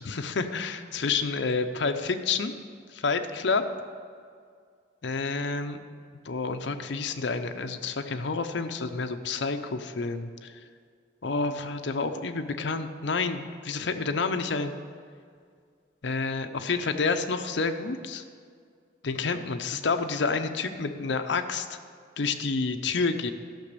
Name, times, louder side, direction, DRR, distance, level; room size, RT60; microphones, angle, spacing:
voice 1, 0.0-2.5 2.9-3.6 5.0-5.8 6.2-10.5 11.2-14.8 16.0-18.2 19.0-21.8 22.2-23.3, left 4 dB, 60° left, 7 dB, 0.6 m, -29 dB
11.5 x 5.9 x 6.8 m, 2.1 s
head